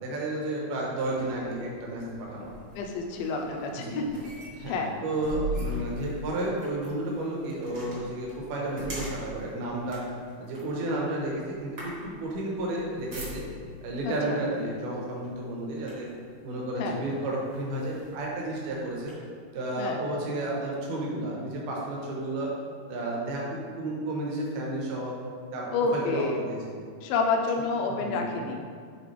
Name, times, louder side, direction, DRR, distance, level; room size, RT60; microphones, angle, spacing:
voice 1, 0.0-2.5 3.3-4.0 4.6-10.0 10.4-13.4 13.8-16.1 16.4-19.1 19.5-22.5 22.9-25.1 25.5-25.7 25.9-26.6 28.0-28.3, right 1 dB, 75° right, -3 dB, 2.9 m, -32 dB
sound 1, 1.0-13.8 14.7-14.9 15.3-16.3 16.9-17.0 17.5-19.1, right 1 dB, 60° right, 1.1 m, -41 dB
voice 2, 2.8-4.0 4.7-4.9 14.0-14.4 16.8-17.0 19.8-20.0 25.7-26.4 27.0-28.7, left 4 dB, 80° left, 1 dB, 2.1 m, -29 dB
8.9 x 3.8 x 3.3 m, 2.1 s
omnidirectional pair, 4.6 m